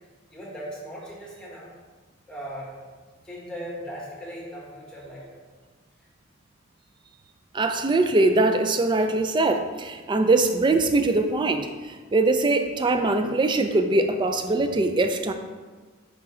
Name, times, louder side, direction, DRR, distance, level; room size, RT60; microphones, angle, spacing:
voice 1, 0.3-1.7 2.3-2.7 3.2-5.4 14.5-14.6, equal, 5° left, -4 dB, 1.3 m, -38 dB
voice 2, 7.5-15.3, right 2 dB, 25° right, 7 dB, 0.3 m, -22 dB
5.0 x 4.6 x 4.2 m, 1.4 s
head